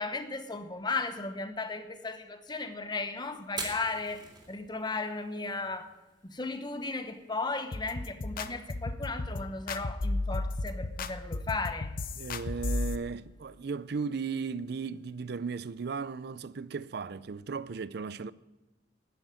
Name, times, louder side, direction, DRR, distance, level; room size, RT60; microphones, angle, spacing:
voice 1, 0.0-5.9 6.2-11.9, left 3 dB, 25° left, 1.0 m, -35 dB
Fire, 3.4-17.3, right 3 dB, 25° right, 3.3 m, -50 dB
sound 1, 7.7-13.0, left 2 dB, 50° left, 0.7 m, -34 dB
voice 2, 12.2-18.3, right 5 dB, 60° right, 0.5 m, -36 dB
10.5 x 10.0 x 8.9 m
head